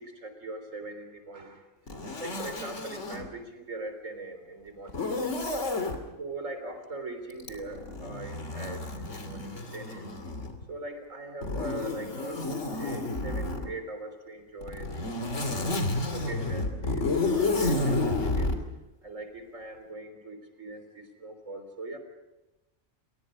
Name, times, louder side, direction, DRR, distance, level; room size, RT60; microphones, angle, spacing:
voice 1, 0.0-1.7 2.2-5.3 6.2-10.1 10.7-15.3 16.1-17.0 17.3-18.6 19.0-22.0, right 2 dB, 80° right, 7 dB, 4.1 m, -41 dB
Zipper (clothing), 1.9-3.3 4.9-6.0 7.4-10.6 11.4-13.7 14.6-18.6, left 2 dB, 65° left, 3.1 m, -31 dB
29.5 x 23.0 x 5.2 m, 1.0 s
omnidirectional pair, 1.3 m